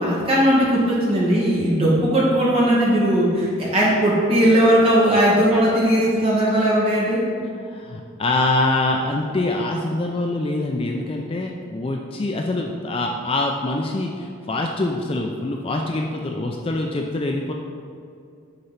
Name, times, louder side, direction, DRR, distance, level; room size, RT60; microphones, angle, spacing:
voice 1, 0.0-7.2, equal, 30° right, -6 dB, 1.9 m, -18 dB
voice 2, 7.7-17.5, left 2 dB, 25° left, 2 dB, 0.4 m, -24 dB
6.6 x 4.4 x 5.7 m, 2.4 s
head